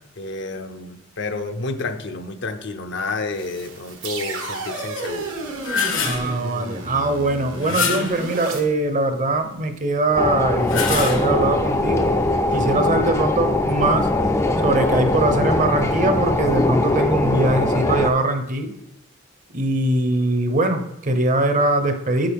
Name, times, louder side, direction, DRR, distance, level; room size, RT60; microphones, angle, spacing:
voice 1, 0.2-5.3, left 3 dB, 60° left, 6 dB, 0.7 m, -30 dB
sound 1, 3.3-8.6, right 2 dB, 85° right, 1.6 m, -32 dB
sound 2, 5.4-6.3 7.6-8.3 10.5-11.5, left 5 dB, 85° left, 1.4 m, -25 dB
voice 2, 6.0-12.1 12.5-14.1 14.6-18.7 19.5-22.3, right 2 dB, 40° right, 7 dB, 0.7 m, -21 dB
sound 3, 10.2-18.1, left 2 dB, 15° left, 0.4 m, -21 dB
8.8 x 6.5 x 3.5 m, 0.81 s
head